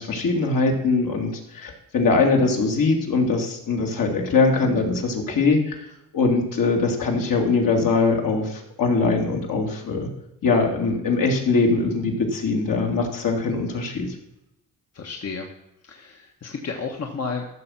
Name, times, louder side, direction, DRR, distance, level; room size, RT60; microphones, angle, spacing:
voice 1, 0.0-5.8 6.1-10.1 10.4-14.1, left 3 dB, 65° left, 1 dB, 2.7 m, -22 dB
voice 2, 14.9-15.5 15.8-17.5, left 4 dB, 45° left, 1 dB, 1.4 m, -32 dB
14.0 x 6.4 x 5.8 m, 0.83 s
cardioid pair, 100°, 35 cm